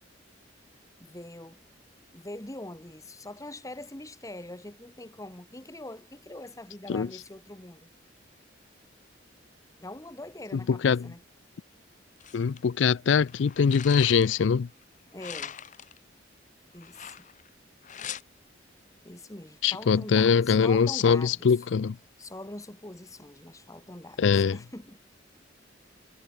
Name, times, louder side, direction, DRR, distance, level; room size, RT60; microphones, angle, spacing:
voice 1, 1.0-1.6 2.1-7.9 9.8-11.2 15.1-15.6 16.7-17.3 19.0-21.7 22.2-25.0, left 1 dB, 15° left, 1.5 m, -43 dB
voice 2, 10.7-11.1 12.3-14.7 19.6-22.0 24.2-24.6, left 6 dB, 70° left, 0.4 m, -23 dB
sound 1, 12.2-12.6 13.3-14.5 15.2-16.0 16.8-17.5 17.8-18.2, left 9 dB, 40° left, 0.8 m, -41 dB
head